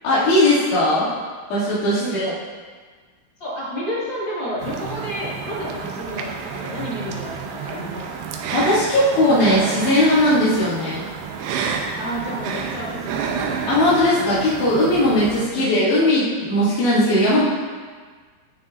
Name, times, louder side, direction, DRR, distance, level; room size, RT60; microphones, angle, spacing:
voice 1, 0.0-1.1 1.5-2.3 8.5-11.0 13.7-17.4, left 1 dB, 85° left, -13 dB, 5.0 m, -18 dB
voice 2, 2.0-2.4 3.4-8.1 10.5-10.7 12.0-13.5 15.5-15.8, equal, 35° left, -9 dB, 2.4 m, -30 dB
sound 1, 4.6-15.5, right 6 dB, 85° right, 2.8 m, -30 dB
18.0 x 6.4 x 2.7 m, 1.5 s
omnidirectional pair, 4.7 m